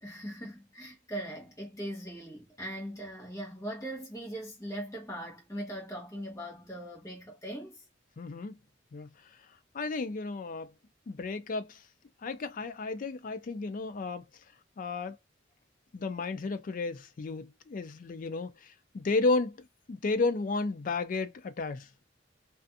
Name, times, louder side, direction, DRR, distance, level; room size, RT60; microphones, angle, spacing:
voice 1, 0.0-7.8, right 1 dB, 15° left, 1.0 m, -40 dB
voice 2, 8.2-8.5 8.9-9.1 9.7-10.7 11.1-11.8 12.2-14.2 14.8-15.2 15.9-21.9, left 3 dB, 45° left, 0.4 m, -33 dB
2.5 x 2.4 x 2.6 m
head